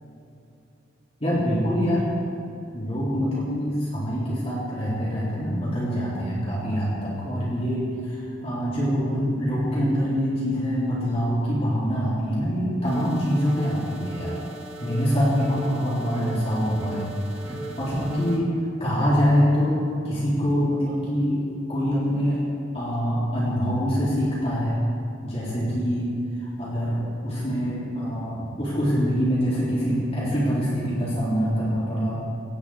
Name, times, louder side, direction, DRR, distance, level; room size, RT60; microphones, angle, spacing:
voice 1, 1.2-2.0 2.7-14.4 14.8-17.1 17.4-18.5 18.8-21.4 21.7-22.4 22.7-24.8 25.2-26.1 26.6-32.3, equal, 30° left, -8 dB, 3.6 m, -25 dB
sound 1, 12.8-18.4, right 2 dB, 70° right, 2.3 m, -38 dB
17.0 x 6.4 x 8.3 m, 2.7 s
head